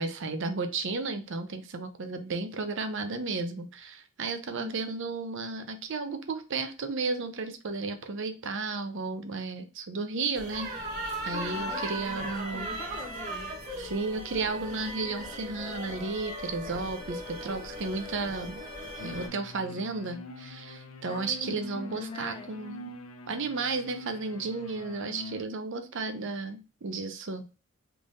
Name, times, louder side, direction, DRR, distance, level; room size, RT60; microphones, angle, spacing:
voice 1, 0.0-10.7 11.2-12.7 13.8-18.6 19.0-22.9 23.3-27.4, right 3 dB, 55° right, 0.6 m, -33 dB
sound 1, 10.3-19.3, right 1 dB, 40° right, 1.0 m, -37 dB
voice 2, 11.4-13.8 21.1-22.5, left 2 dB, 20° left, 0.4 m, -43 dB
sound 2, 19.0-25.4, left 3 dB, 80° left, 0.5 m, -45 dB
3.7 x 3.3 x 2.6 m
head